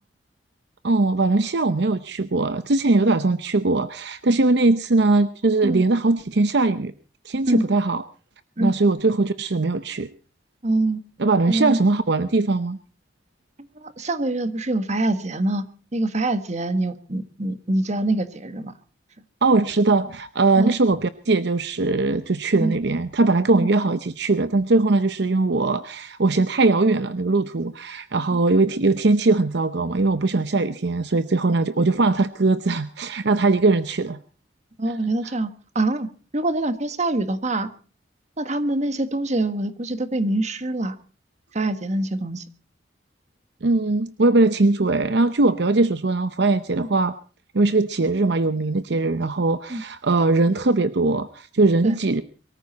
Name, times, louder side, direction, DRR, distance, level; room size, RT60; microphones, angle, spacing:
voice 1, 0.8-6.9 7.2-8.0 8.6-10.1 11.2-12.8 19.4-34.2 35.2-35.3 43.6-47.1 47.5-52.2, right 3 dB, 65° right, 12 dB, 0.8 m, -20 dB
voice 2, 10.6-11.0 11.5-11.8 13.8-15.6 15.9-18.7 20.5-20.7 22.6-22.8 23.5-23.7 28.3-28.4 34.8-35.5 35.7-37.7 38.4-40.9 41.5-42.4 46.8-46.9 49.7-49.8 51.8-52.0, right 2 dB, 40° right, 10 dB, 1.5 m, -24 dB
23.5 x 14.0 x 4.1 m, 0.38 s
head